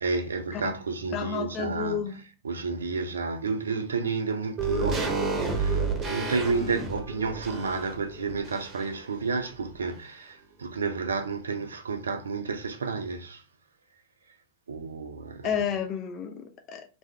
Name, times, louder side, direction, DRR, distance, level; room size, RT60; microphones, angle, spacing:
voice 1, 0.0-13.4 14.7-15.5, right 4 dB, 70° right, 0.5 m, -31 dB
voice 2, 1.1-2.2 15.4-16.9, left 7 dB, 35° left, 0.5 m, -31 dB
sound 1, 4.6-9.1 9.3-9.4, right 4 dB, 25° right, 1.0 m, -30 dB
3.4 x 2.7 x 3.2 m
figure-of-eight pair, 90°, 0 cm